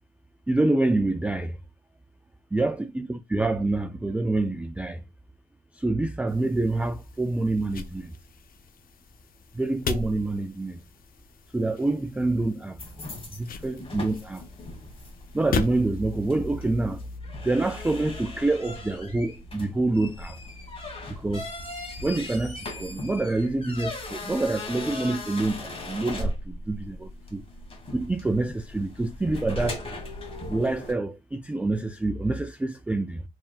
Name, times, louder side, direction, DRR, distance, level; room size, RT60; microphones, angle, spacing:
voice 1, 0.5-1.6 2.5-5.0 5.7-8.1 9.5-10.8 11.5-12.8 13.4-14.4 15.3-17.0 17.4-20.4 21.1-21.5 22.0-27.4 27.9-29.8 30.5-33.2, right 2 dB, 5° right, 0.3 m, -27 dB
sound 1, 6.3-17.2, left 5 dB, 45° left, 0.6 m, -38 dB
sound 2, 12.8-30.9, left 1 dB, 30° left, 1.6 m, -38 dB
4.1 x 3.4 x 2.4 m
cardioid pair, 90°, 20 cm